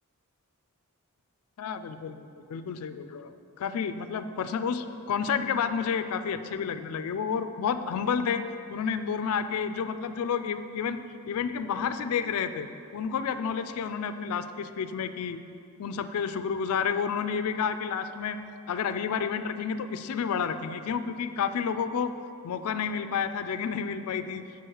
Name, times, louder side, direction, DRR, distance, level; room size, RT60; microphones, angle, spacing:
voice 1, 1.6-8.4 8.7-12.7 12.9-15.4 15.8-18.4 18.7-22.1 22.4-24.4, left 6 dB, 70° left, 11 dB, 0.3 m, -30 dB
7.1 x 4.6 x 6.3 m, 2.6 s
head